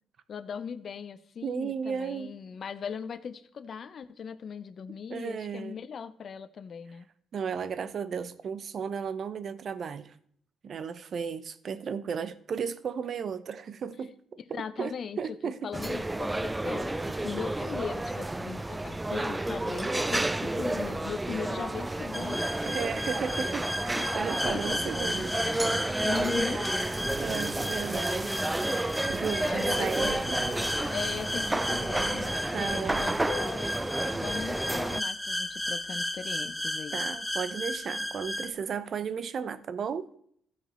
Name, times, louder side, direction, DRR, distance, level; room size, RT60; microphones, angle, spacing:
voice 1, 0.3-7.1 14.5-15.4 15.6-22.5 24.0-26.7 27.7-27.9 29.4-30.4 30.9-37.0, left 6 dB, 55° left, 0.7 m, -39 dB
voice 2, 1.4-2.4 5.1-5.8 7.3-10.1 10.6-14.1 14.5-15.7 22.6-25.3 26.4-28.3 29.1-30.5 32.5-33.1 36.9-40.1, right 6 dB, 55° right, 0.7 m, -35 dB
sound 1, 15.7-35.0, right 2 dB, 15° right, 0.4 m, -31 dB
sound 2, 22.1-38.5, left 1 dB, 5° left, 0.8 m, -34 dB
sound 3, 24.4-33.4, right 7 dB, 85° right, 1.0 m, -49 dB
15.0 x 5.1 x 4.4 m
cardioid pair, 90°, 0 cm